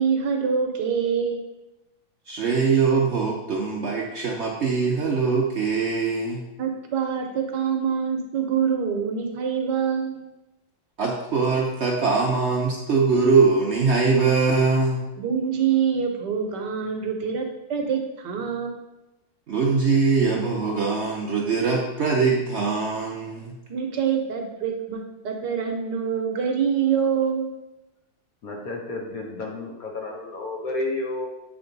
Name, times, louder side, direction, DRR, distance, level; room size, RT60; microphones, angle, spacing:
voice 1, 0.0-1.4 6.6-10.3 15.2-18.7 23.7-27.5, right 7 dB, 65° right, 3 dB, 1.3 m, -25 dB
voice 2, 2.3-6.4 11.0-15.0 19.5-23.5, right 4 dB, 90° right, -2 dB, 0.6 m, -22 dB
voice 3, 28.4-31.3, left 2 dB, 55° left, 0 dB, 1.1 m, -31 dB
8.3 x 3.4 x 3.9 m, 0.98 s
omnidirectional pair, 2.2 m